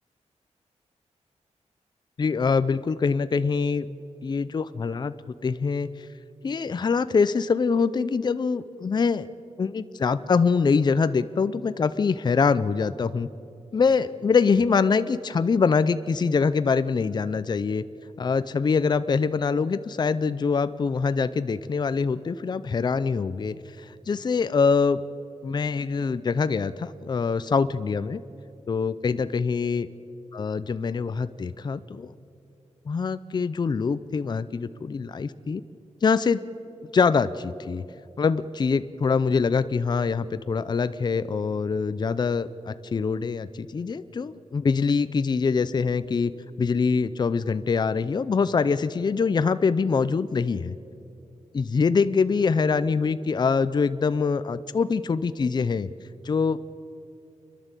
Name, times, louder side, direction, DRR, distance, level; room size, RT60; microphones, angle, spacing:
voice 1, 2.2-3.9 4.2-6.1 6.4-9.3 9.6-13.3 13.7-17.8 18.2-25.0 25.4-28.2 28.7-29.9 30.3-32.1 32.9-35.6 36.0-36.4 36.9-37.8 38.2-46.3 46.6-50.8 51.5-55.9 56.2-56.6, left 5 dB, 35° left, 13 dB, 0.5 m, -24 dB
29.0 x 11.0 x 8.2 m, 2.6 s
wide cardioid pair, 145°, 12 cm